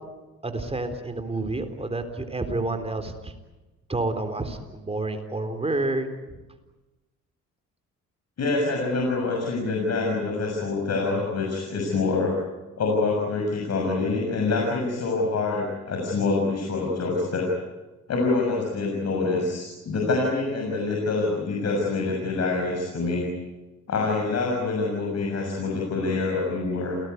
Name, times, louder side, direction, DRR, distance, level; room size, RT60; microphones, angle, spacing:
voice 1, 0.4-3.3 3.9-6.1, right 2 dB, 20° right, 7 dB, 3.9 m, -29 dB
voice 2, 8.4-12.3 12.8-17.5 18.1-23.3 23.9-27.0, left 3 dB, 60° left, 0 dB, 6.8 m, -26 dB
29.0 x 19.0 x 9.6 m, 1.1 s
cardioid pair, 90°, 30 cm